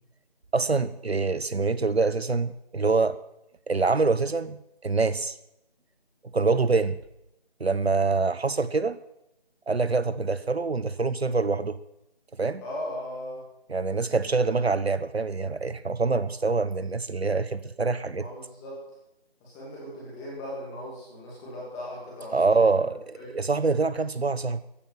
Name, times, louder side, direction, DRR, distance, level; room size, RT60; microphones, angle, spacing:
voice 1, 0.5-3.2 3.7-5.4 6.3-7.0 7.6-9.0 9.7-11.8 12.4-12.6 13.7-18.2 22.3-24.6, right 4 dB, 80° right, 15 dB, 1.1 m, -25 dB
voice 2, 12.6-13.4 18.1-18.8 19.4-22.8 23.1-23.3, left 1 dB, 5° left, -6 dB, 2.7 m, -38 dB
14.5 x 8.9 x 9.2 m, 0.83 s
figure-of-eight pair, 170°, 31 cm